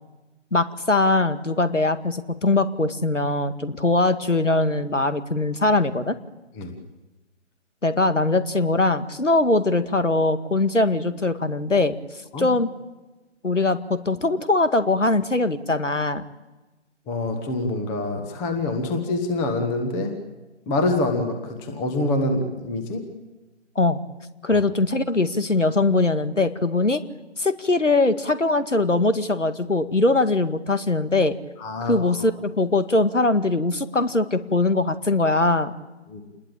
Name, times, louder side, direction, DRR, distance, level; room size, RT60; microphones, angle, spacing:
voice 1, 0.5-6.2 7.8-12.0 12.4-12.7 13.4-16.2 23.8-24.0 24.4-27.0 27.4-31.4 31.8-35.8, left 2 dB, 80° left, 11 dB, 2.1 m, -21 dB
voice 2, 17.1-20.2 20.7-23.0 24.5-24.6 31.6-32.3 36.1-36.2, left 2 dB, 5° left, 6 dB, 1.3 m, -26 dB
28.0 x 20.5 x 8.9 m, 1.1 s
figure-of-eight pair, 150°, 36 cm